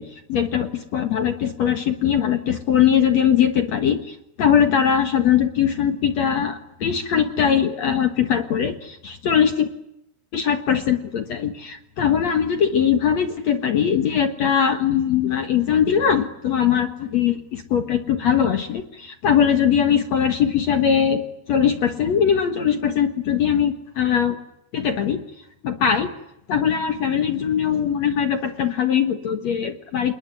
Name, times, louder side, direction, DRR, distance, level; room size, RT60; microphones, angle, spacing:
voice 1, 0.0-9.7 10.3-21.2 21.5-24.4 24.7-25.2 25.6-26.1 26.5-30.1, left 8 dB, 55° left, 8 dB, 2.1 m, -21 dB
28.5 x 21.0 x 9.7 m, 0.82 s
omnidirectional pair, 4.7 m